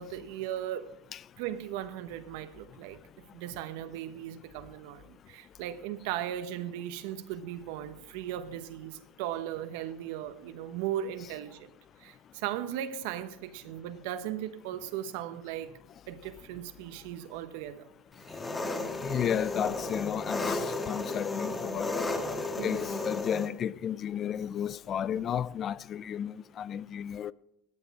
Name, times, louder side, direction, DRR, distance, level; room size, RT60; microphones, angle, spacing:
voice 1, 0.0-0.9 1.4-11.7 12.0-15.7 16.1-17.9 22.6-22.9, right 11 dB, 70° right, 0.9 m, -37 dB
Engine, 18.2-23.5, left 2 dB, 20° left, 1.5 m, -34 dB
voice 2, 19.0-21.9 22.6-27.3, left 9 dB, 40° left, 0.3 m, -33 dB
14.0 x 9.0 x 4.8 m
supercardioid pair, 105°, 0 cm